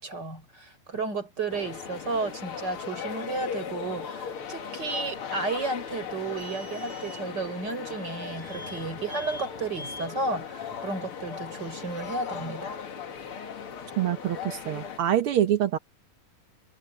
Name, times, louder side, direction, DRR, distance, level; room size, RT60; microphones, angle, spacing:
voice 1, 0.0-12.8, right 3 dB, 30° right, 5.5 m, -33 dB
sound 1, 1.5-15.0, left 7 dB, 45° left, 2.1 m, -38 dB
sound 2, 5.9-12.2, equal, 65° right, 7.5 m, -47 dB
voice 2, 14.0-15.8, right 11 dB, 90° right, 1.2 m, -25 dB
omnidirectional pair, 4.0 m